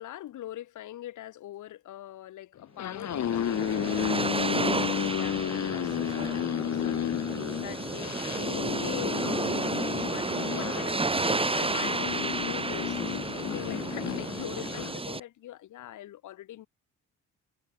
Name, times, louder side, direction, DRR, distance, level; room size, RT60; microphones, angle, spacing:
voice 1, 0.0-4.1 4.4-8.1 8.5-16.7, left 13 dB, 80° left, 5.0 m, -43 dB
sound 1, 2.6-15.0, left 10 dB, 65° left, 4.6 m, -32 dB
sound 2, 2.9-15.2, right 3 dB, 20° right, 2.3 m, -32 dB
cardioid pair, 90°, 30 cm